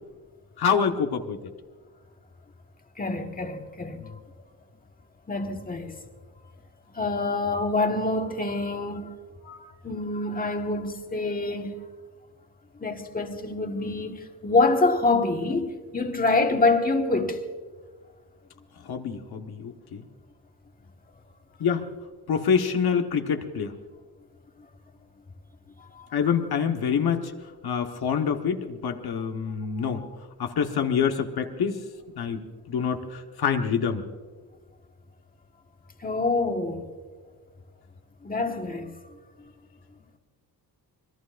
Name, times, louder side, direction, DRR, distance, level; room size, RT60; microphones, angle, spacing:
voice 1, 0.6-1.4 4.0-4.1 18.8-20.1 21.6-21.9 22.3-23.7 26.1-27.3 27.6-30.0 30.4-31.8 32.2-34.0, left 7 dB, 75° left, 1.3 m, -26 dB
voice 2, 3.0-4.0 5.3-6.0 6.9-9.2 9.4-9.6 9.8-11.7 12.8-17.4 25.9-26.2 29.8-30.1 36.0-36.9 38.2-38.9, left 3 dB, 20° left, 1.5 m, -26 dB
26.5 x 20.5 x 2.6 m
wide cardioid pair, 140°, 39 cm